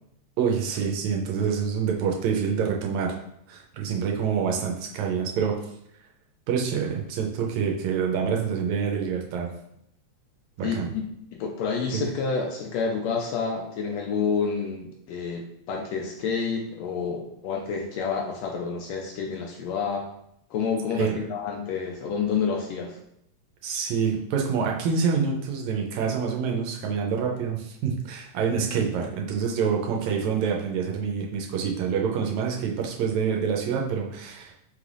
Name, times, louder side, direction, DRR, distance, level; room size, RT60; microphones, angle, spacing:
voice 1, 0.4-3.2 3.5-5.6 6.5-9.5 10.6-10.9 11.9-12.0 20.9-21.2 23.6-34.5, right 6 dB, 80° right, 0 dB, 1.9 m, -26 dB
voice 2, 10.6-11.1 11.3-20.0 20.5-23.0, left 5 dB, 75° left, 0 dB, 1.6 m, -29 dB
5.4 x 3.3 x 2.5 m, 0.76 s
omnidirectional pair, 3.3 m